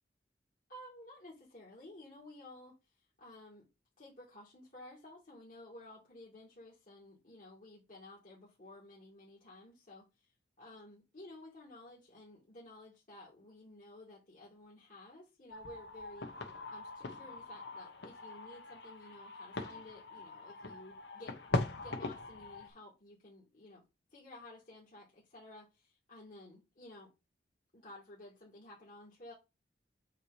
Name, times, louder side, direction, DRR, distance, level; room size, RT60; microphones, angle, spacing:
voice 1, 0.7-2.8 3.2-3.6 4.0-10.1 10.6-16.3 16.7-21.4 21.8-23.8 24.1-27.1 27.7-29.3, left 1 dB, 50° left, 2.4 m, -54 dB
sound 1, 15.5-22.7, left 2 dB, 75° left, 1.2 m, -41 dB
7.6 x 2.9 x 5.0 m
head